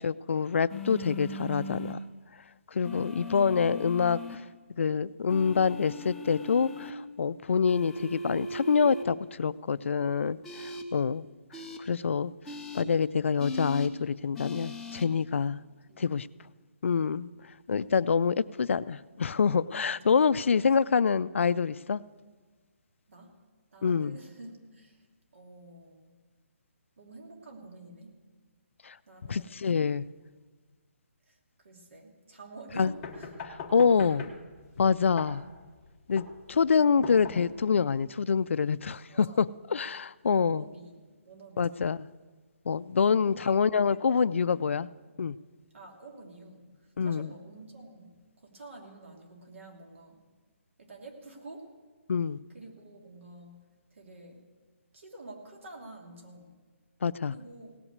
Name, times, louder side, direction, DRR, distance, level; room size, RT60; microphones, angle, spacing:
voice 1, 0.0-2.0 2.7-4.4 4.8-11.3 11.8-12.3 12.7-15.6 16.0-16.3 16.8-17.3 17.7-22.0 23.8-24.1 28.8-29.0 29.3-30.1 32.8-32.9 33.5-34.3 34.8-35.4 36.1-40.7 41.6-42.0 42.7-44.9 45.2-45.4 47.0-47.3 52.1-52.4 57.0-57.3, left 6 dB, 65° left, 17 dB, 0.3 m, -26 dB
sound 1, 0.7-1.9 2.8-4.4 5.3-6.9 7.7-9.0 10.4-10.8 11.5-11.8 12.5-12.8 13.4-13.9 14.4-15.0, left 1 dB, 5° left, 0.5 m, -39 dB
voice 2, 15.9-16.2 17.9-18.1 23.1-23.3 23.7-25.1 25.3-26.1 27.0-28.1 29.1-29.6 31.3-33.3 33.9-34.1 36.9-37.2 39.1-39.5 40.3-40.9 41.3-41.9 43.1-44.8 45.7-46.7 47.0-50.2 50.8-51.7 52.5-53.6 53.9-54.4 54.9-56.5 57.3-57.8, right 2 dB, 65° right, 1 dB, 2.7 m, -49 dB
sound 2, 32.8-37.8, left 4 dB, 20° left, 1.1 m, -42 dB
17.5 x 6.0 x 8.0 m, 1.4 s
hypercardioid pair, 170°, 7 cm